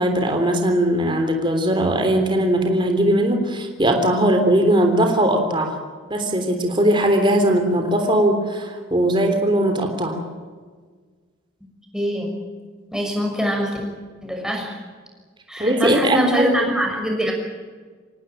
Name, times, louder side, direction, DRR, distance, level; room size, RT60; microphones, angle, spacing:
voice 1, 0.0-5.8 6.1-10.2 15.6-16.7, right 1 dB, 25° right, 4 dB, 3.5 m, -19 dB
voice 2, 11.9-12.3 12.9-13.7 14.2-14.8 15.5-17.3, equal, 5° right, 0 dB, 6.5 m, -23 dB
26.0 x 18.5 x 9.0 m, 1.5 s
head